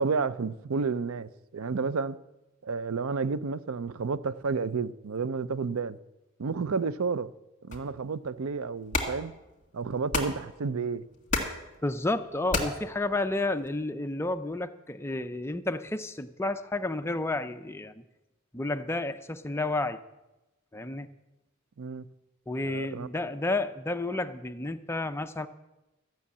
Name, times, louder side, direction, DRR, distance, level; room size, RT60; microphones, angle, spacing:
voice 1, 0.0-2.2 2.6-6.0 6.4-7.3 7.7-9.3 9.7-11.0 21.8-22.0 22.6-23.1, right 4 dB, 75° right, 0.5 m, -31 dB
sound 1, 7.7-13.8, left 3 dB, 35° left, 2.0 m, -35 dB
voice 2, 11.8-18.0 18.5-20.0 20.7-21.1 22.5-25.5, left 2 dB, 10° left, 0.5 m, -31 dB
14.0 x 6.4 x 8.3 m
head